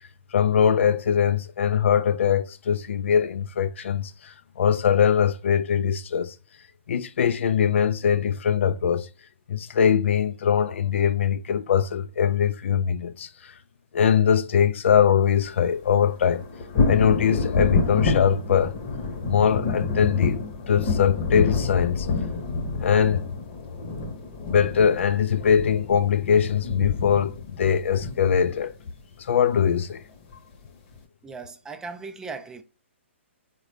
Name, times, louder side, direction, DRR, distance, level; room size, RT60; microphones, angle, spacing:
voice 1, 0.3-6.4 6.9-9.1 9.5-13.5 13.9-16.4 16.9-18.7 19.3-20.4 20.7-22.1 22.8-23.3 24.5-28.7 29.2-30.0, left 7 dB, 65° left, 0.3 m, -22 dB
sound 1, 15.4-29.1 30.3-30.4 30.9-31.0, left 4 dB, 40° left, 0.8 m, -28 dB
voice 2, 31.2-32.6, right 4 dB, 10° right, 0.4 m, -37 dB
3.8 x 2.2 x 3.1 m
hypercardioid pair, 130°, 7 cm